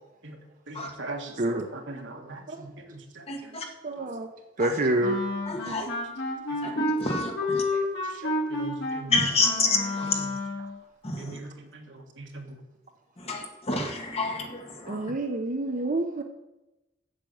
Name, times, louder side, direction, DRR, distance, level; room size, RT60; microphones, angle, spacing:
voice 1, 0.7-3.0 4.0-4.1 4.7-4.8 5.8-5.9 6.6-6.7 8.2-9.2 10.2-10.3 11.2-11.9 12.2-12.4, right 2 dB, 65° right, 3 dB, 1.7 m, -40 dB
voice 2, 3.3-3.6 4.6-4.7 5.5-5.8 6.8-7.3 9.1-9.7 13.3-13.4 13.7-13.9 14.1-14.4, left 3 dB, 30° left, 2 dB, 1.8 m, -26 dB
voice 3, 3.8-4.3 4.6-5.2 5.7-5.8 14.9-16.2, right 2 dB, 45° right, 5 dB, 0.7 m, -27 dB
Wind instrument woodwind instrument, 5.0-10.7, left 2 dB, 60° left, 3.2 m, -30 dB
8.4 x 7.4 x 7.8 m, 0.99 s
head